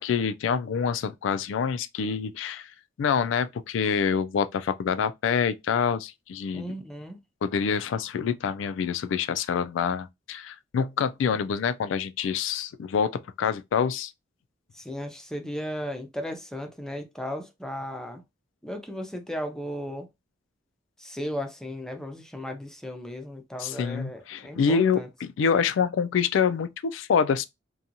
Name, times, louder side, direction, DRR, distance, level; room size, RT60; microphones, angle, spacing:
voice 1, 0.0-2.7 3.0-6.7 7.4-14.1 23.6-27.4, left 6 dB, 80° left, 0.3 m, -26 dB
voice 2, 6.5-7.2 14.7-18.2 18.6-20.1 21.0-25.1, equal, 5° left, 0.5 m, -35 dB
2.8 x 2.3 x 2.5 m
head